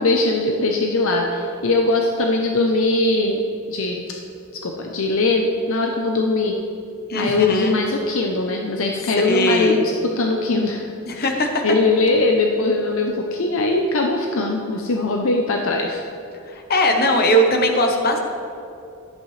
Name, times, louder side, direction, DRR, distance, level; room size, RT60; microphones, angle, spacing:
voice 1, 0.0-3.4 3.7-4.0 4.6-6.5 7.2-11.4 11.6-16.0, left 2 dB, 65° left, 2 dB, 0.6 m, -21 dB
voice 2, 7.1-7.8 9.2-9.8 11.1-11.6 16.5-18.2, equal, 45° left, 4 dB, 1.0 m, -19 dB
12.0 x 8.3 x 3.2 m, 2.7 s
head